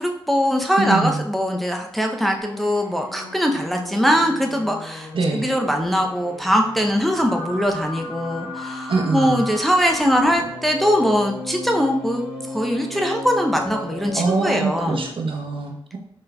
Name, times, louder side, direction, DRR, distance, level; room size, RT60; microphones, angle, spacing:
voice 1, 0.0-15.1, equal, ahead, 2 dB, 0.5 m, -21 dB
voice 2, 0.8-1.2 5.1-5.5 8.9-9.5 14.1-16.0, right 3 dB, 60° right, 2 dB, 0.8 m, -23 dB
sound 1, 2.4-15.1, left 2 dB, 80° left, 0.8 m, -35 dB
4.0 x 3.6 x 2.2 m, 0.74 s
supercardioid pair, 45°, 10 cm